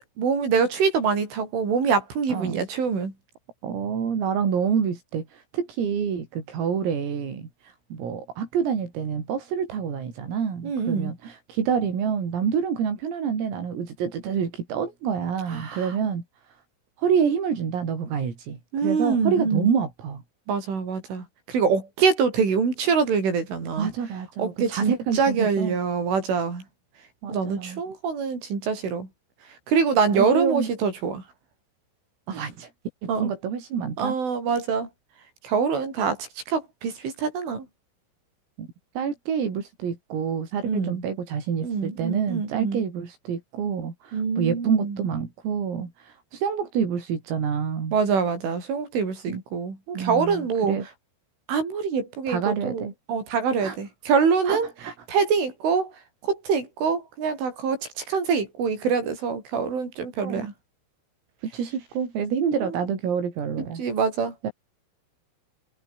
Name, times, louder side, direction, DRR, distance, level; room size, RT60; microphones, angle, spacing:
voice 1, 0.2-3.1 10.6-11.1 15.5-15.9 18.7-19.7 20.5-23.9 24.4-26.6 27.3-29.1 29.7-31.2 33.1-33.3 34.0-34.9 35.4-37.7 40.6-41.0 41.6-42.8 44.1-45.0 47.9-50.8 51.5-52.8 53.1-54.7 55.1-55.9 56.2-60.5 62.5-62.7 63.8-64.3, right 5 dB, 70° right, 9.7 m, -25 dB
voice 2, 2.3-2.6 3.6-7.5 7.9-16.2 17.0-20.2 23.8-25.8 27.2-27.8 30.1-30.7 32.3-32.7 33.0-34.2 38.6-38.7 39.0-48.0 49.3-49.4 49.9-50.9 52.3-52.9 53.6-53.8 54.5-54.9 60.2-60.5 61.4-63.8 64.4-64.5, right 7 dB, 85° right, 7.9 m, -27 dB
omnidirectional pair, 5.9 m